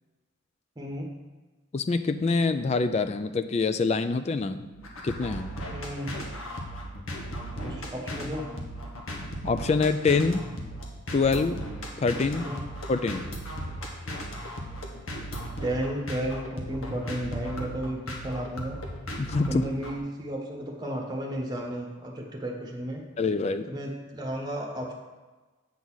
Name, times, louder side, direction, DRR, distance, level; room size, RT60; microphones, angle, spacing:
voice 1, 0.8-1.1 5.7-6.1 7.5-8.4 12.3-12.6 15.6-18.0 18.2-18.8 19.5-23.0 23.7-24.9, right 1 dB, 20° right, 0 dB, 1.1 m, -33 dB
voice 2, 1.7-4.7 5.0-5.5 9.4-10.4 11.1-11.6 12.0-12.5 12.9-13.3 19.2-19.7 23.2-23.7, left 4 dB, 30° left, 11 dB, 0.3 m, -25 dB
sound 1, 4.6-20.0, equal, 80° left, 1.3 m, -37 dB
8.2 x 3.9 x 6.2 m, 1.2 s
head